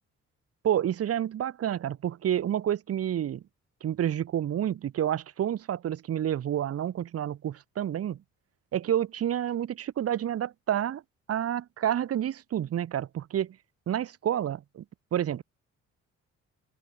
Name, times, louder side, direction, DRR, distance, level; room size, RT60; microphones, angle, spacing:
voice 1, 0.6-3.4 3.8-8.2 8.7-11.0 11.3-13.6 13.9-14.8 15.1-15.4, right 10 dB, 50° right, 0.9 m, -29 dB
cardioid pair, 90°, 30 cm